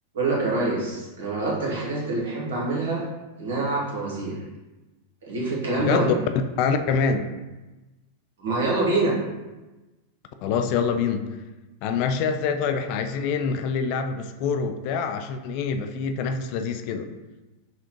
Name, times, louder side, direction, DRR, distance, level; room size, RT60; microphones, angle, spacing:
voice 1, 0.1-3.1 3.4-4.4 5.2-6.1 8.4-9.1, right 2 dB, 65° right, -3 dB, 1.2 m, -25 dB
voice 2, 5.8-6.1 6.6-7.3 10.4-11.3 11.8-17.1, left 6 dB, 50° left, 7 dB, 0.3 m, -25 dB
5.5 x 2.4 x 2.9 m, 1.1 s
figure-of-eight pair, 95°, 0 cm